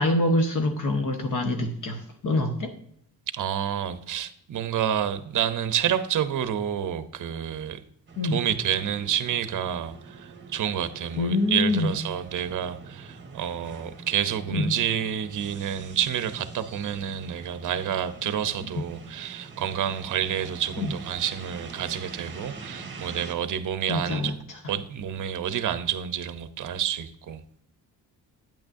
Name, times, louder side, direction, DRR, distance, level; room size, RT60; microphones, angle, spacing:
voice 1, 0.0-2.7 8.2-8.4 11.2-11.9 14.5-14.7 18.8-18.9 20.8-20.9 23.9-24.6, left 2 dB, 55° left, 5 dB, 1.0 m, -25 dB
voice 2, 3.3-7.8 8.2-24.3 24.7-27.4, right 9 dB, 55° right, 11 dB, 0.7 m, -29 dB
sound 1, 8.1-23.3, right 4 dB, 30° right, 1.2 m, -44 dB
8.9 x 8.6 x 2.6 m, 0.67 s
wide cardioid pair, 140°, 37 cm